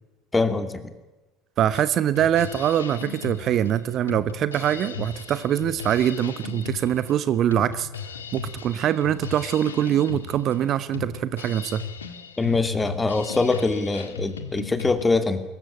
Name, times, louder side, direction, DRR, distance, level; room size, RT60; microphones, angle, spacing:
voice 1, 0.3-0.8 12.4-15.4, left 3 dB, 15° left, 10 dB, 2.6 m, -23 dB
voice 2, 1.6-7.9 8.3-11.8, right 10 dB, 45° right, 15 dB, 1.0 m, -23 dB
Drum kit, 1.7-15.0, left 6 dB, 75° left, 1.8 m, -37 dB
24.5 x 15.0 x 9.9 m, 1.1 s
figure-of-eight pair, 65°, 0 cm